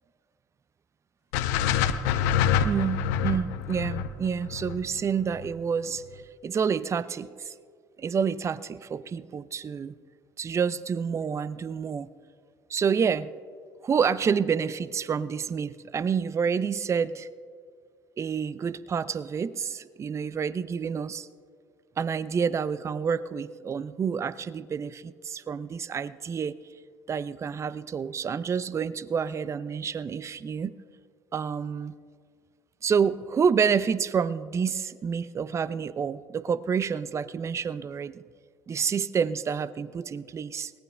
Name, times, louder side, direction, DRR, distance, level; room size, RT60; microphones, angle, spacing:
sound 1, 1.3-5.5, left 8 dB, 70° left, 0.6 m, -26 dB
voice 1, 2.6-6.0 6.4-7.5 8.0-10.0 10.4-12.1 12.7-13.3 13.8-17.3 18.2-21.3 22.0-26.6 27.1-30.7 31.3-31.9 32.8-38.2 38.7-40.7, right 6 dB, 30° right, 17 dB, 0.5 m, -28 dB
23.5 x 18.0 x 2.2 m, 2.1 s
hypercardioid pair, 65°, 10 cm